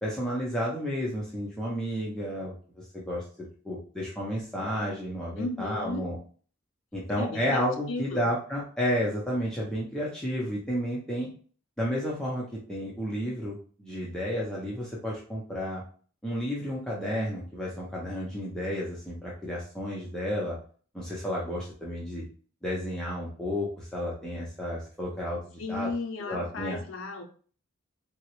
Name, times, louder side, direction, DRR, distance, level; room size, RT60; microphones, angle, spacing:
voice 1, 0.0-3.2 3.6-6.2 6.9-11.3 11.8-15.8 16.2-20.6 20.9-22.2 22.6-25.9 26.2-26.8, equal, 5° left, -6 dB, 0.6 m, -32 dB
voice 2, 5.4-6.1 7.2-8.3 25.6-27.2, left 3 dB, 75° left, 2 dB, 0.5 m, -35 dB
3.6 x 2.0 x 2.9 m, 0.42 s
head